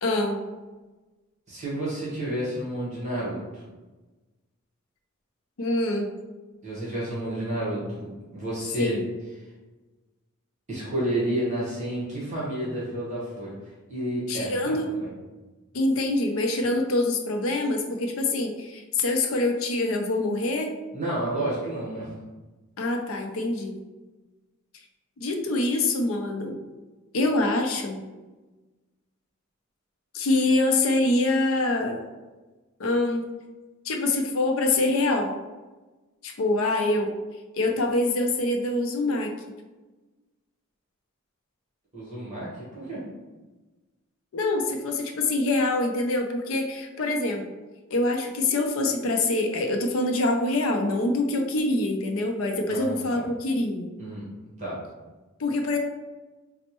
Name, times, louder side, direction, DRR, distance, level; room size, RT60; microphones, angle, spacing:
voice 1, 0.0-0.4 5.6-6.1 8.8-9.0 14.3-14.9 15.7-20.7 22.8-23.8 25.2-26.5 27.1-28.0 30.1-32.0 32.8-33.3 33.8-35.4 36.2-37.1 37.5-39.3 44.3-47.4 47.9-53.9 55.4-55.8, left 2 dB, 75° left, 3 dB, 0.5 m, -25 dB
voice 2, 1.5-3.6 6.6-9.0 10.7-13.5 13.9-15.1 20.9-22.1 41.9-43.0 52.7-53.3 54.0-54.3 54.6-54.8, right 1 dB, 35° right, -7 dB, 1.1 m, -30 dB
4.3 x 2.0 x 2.9 m, 1.2 s
head